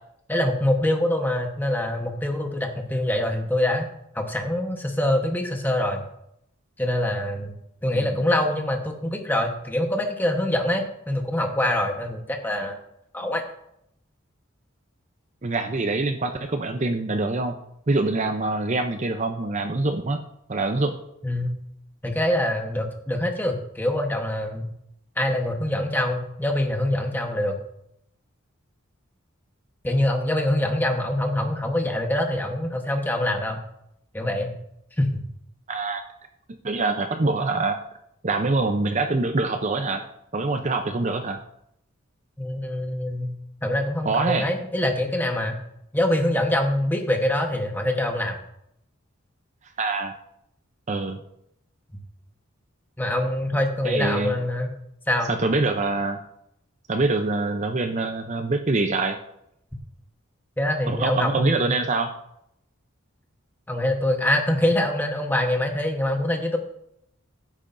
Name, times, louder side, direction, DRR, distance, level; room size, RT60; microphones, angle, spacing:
voice 1, 0.3-3.9 4.1-6.0 6.8-7.5 7.8-12.8 13.1-13.4 21.2-21.6 22.0-24.7 25.2-27.6 29.8-33.6 34.1-34.5 35.0-35.2 42.4-43.3 43.6-45.6 45.9-48.4 53.0-54.7 55.1-55.3 60.6-61.7 63.7-66.6, left 1 dB, 10° left, 3 dB, 1.1 m, -24 dB
voice 2, 15.4-17.6 17.9-20.2 20.5-20.9 35.7-36.0 36.6-37.8 38.2-40.0 40.3-41.4 44.1-44.5 49.8-50.1 50.9-51.2 53.8-54.4 55.3-56.2 56.9-59.2 60.9-62.1, right 3 dB, 35° right, 6 dB, 0.6 m, -24 dB
15.5 x 8.5 x 2.6 m, 0.77 s
head